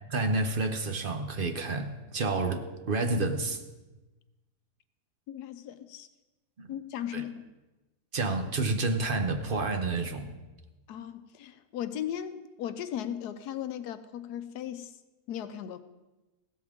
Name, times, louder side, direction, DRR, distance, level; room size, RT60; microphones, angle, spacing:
voice 1, 0.1-3.6 6.6-6.7 7.1-7.2 8.1-10.3, right 3 dB, 40° right, 7 dB, 0.9 m, -29 dB
voice 2, 5.3-6.1 6.7-7.4 10.9-15.0 15.3-15.8, left 10 dB, 85° left, 11 dB, 1.2 m, -37 dB
16.0 x 13.0 x 3.7 m, 1.1 s
omnidirectional pair, 1.7 m